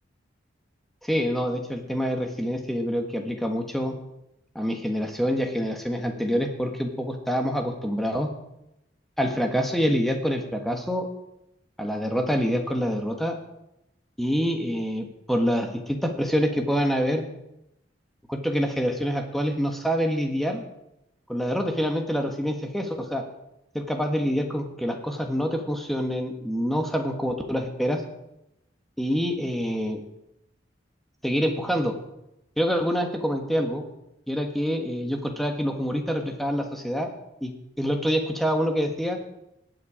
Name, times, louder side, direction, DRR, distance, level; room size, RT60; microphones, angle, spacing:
voice 1, 1.0-4.0 4.5-8.3 9.2-11.1 11.8-13.4 14.2-17.2 18.3-20.6 21.3-23.2 23.7-28.0 29.0-30.0 31.2-31.9 32.6-33.8 34.3-37.1 37.4-39.2, equal, ahead, 3 dB, 1.4 m, -26 dB
19.5 x 8.1 x 5.0 m, 0.87 s
head